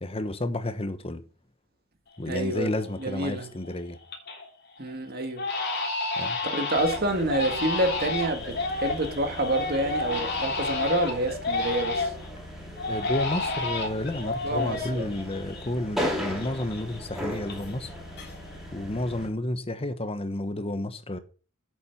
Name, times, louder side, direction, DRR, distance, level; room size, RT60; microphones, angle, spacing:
voice 1, 0.0-1.2 2.2-4.0 6.2-6.4 12.9-17.9 18.7-21.2, left 1 dB, 30° left, 1.1 m, -31 dB
Crying sobbing, 2.2-2.3 2.8-3.2 3.6-4.5 4.8-4.9 5.4-12.3 12.8-16.1 16.4-17.9 18.1-18.7, left 3 dB, 55° left, 3.1 m, -31 dB
voice 2, 2.3-2.7 3.0-3.5 4.8-5.4 6.4-12.1 14.4-15.1, right 1 dB, 50° right, 1.9 m, -28 dB
sound 1, 6.7-19.3, equal, ahead, 3.0 m, -38 dB
8.6 x 7.2 x 5.9 m
head